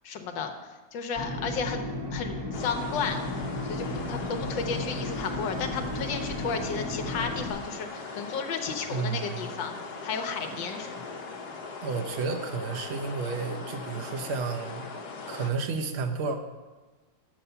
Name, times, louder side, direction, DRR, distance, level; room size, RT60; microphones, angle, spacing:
voice 1, 0.0-0.5 0.9-3.2 3.6-9.7 10.0-11.0, left 5 dB, 80° left, 6 dB, 1.6 m, -33 dB
sound 1, 1.2-7.5, left 1 dB, 15° right, 0.9 m, -34 dB
sound 2, 2.5-15.5, left 4 dB, 60° left, 1.5 m, -40 dB
voice 2, 8.9-9.5 11.8-14.9 15.3-16.4, right 4 dB, 60° right, 4 dB, 0.7 m, -31 dB
7.3 x 5.5 x 6.9 m, 1.2 s
omnidirectional pair, 2.0 m